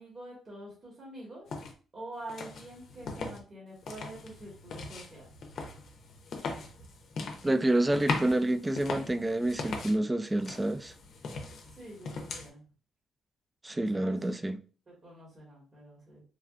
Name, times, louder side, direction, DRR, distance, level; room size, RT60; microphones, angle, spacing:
voice 1, 0.0-1.5 1.9-5.3 11.7-12.6 13.7-14.2 14.9-16.2, right 1 dB, 35° right, 1.4 m, -46 dB
sound 1, 1.5-1.7 2.3-3.4 3.8-10.0 10.4-12.5, left 4 dB, 60° left, 0.6 m, -39 dB
voice 2, 7.4-10.9 13.6-14.6, right 1 dB, 15° right, 0.3 m, -28 dB
3.3 x 2.3 x 2.4 m
cardioid pair, 90°, 0 cm